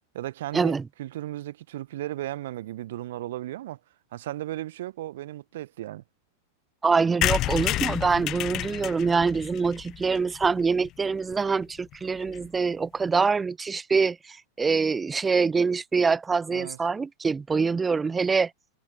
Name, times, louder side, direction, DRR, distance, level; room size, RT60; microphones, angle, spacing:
voice 1, 0.1-3.8 4.1-6.0 16.5-16.8, right 14 dB, 60° right, 1.2 m, -35 dB
voice 2, 6.8-14.2 14.6-18.5, right 5 dB, 15° right, 0.5 m, -24 dB
sound 1, 7.2-10.9 11.3-11.4 11.6-11.7 11.9-12.0 12.2-12.5, left 15 dB, 35° left, 0.7 m, -30 dB
figure-of-eight pair, 95°, 0 cm